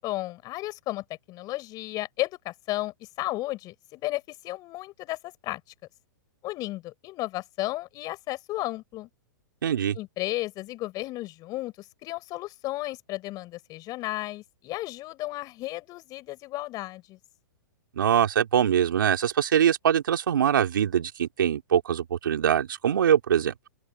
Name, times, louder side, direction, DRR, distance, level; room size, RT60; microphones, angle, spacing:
voice 1, 0.0-5.6 6.4-9.1 9.9-17.2, left 18 dB, 35° left, 6.5 m, -34 dB
voice 2, 9.6-10.0 18.0-23.5, right 9 dB, 75° right, 2.7 m, -23 dB
open air
hypercardioid pair, 125°, 11 cm